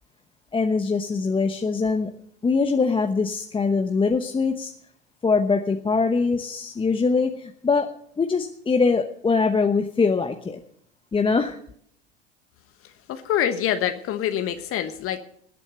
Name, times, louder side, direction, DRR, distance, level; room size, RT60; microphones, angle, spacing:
voice 1, 0.5-2.1 2.4-4.7 5.2-10.6 11.1-11.6, left 4 dB, 15° left, 6 dB, 1.0 m, -23 dB
voice 2, 12.8-15.2, left 10 dB, 40° left, 8 dB, 1.3 m, -26 dB
19.5 x 8.5 x 6.7 m, 0.65 s
hypercardioid pair, 80°, 33 cm